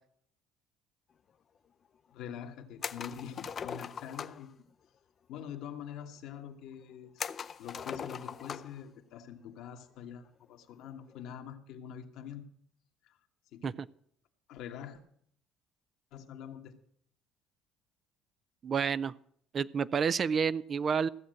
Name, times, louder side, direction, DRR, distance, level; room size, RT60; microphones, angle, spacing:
voice 1, 2.1-4.5 5.3-7.3 7.6-12.5 13.0-13.2 13.5-13.8 14.5-15.0 16.1-16.8, left 9 dB, 70° left, 5 dB, 1.4 m, -45 dB
sound 1, 2.8-4.5 7.2-8.8 9.2-9.3 10.9-11.2, left 7 dB, 45° left, 0.5 m, -40 dB
voice 2, 18.6-19.1 19.5-21.1, right 6 dB, 45° right, 17 dB, 0.5 m, -29 dB
15.0 x 7.2 x 7.7 m, 0.65 s
supercardioid pair, 80°, 0 cm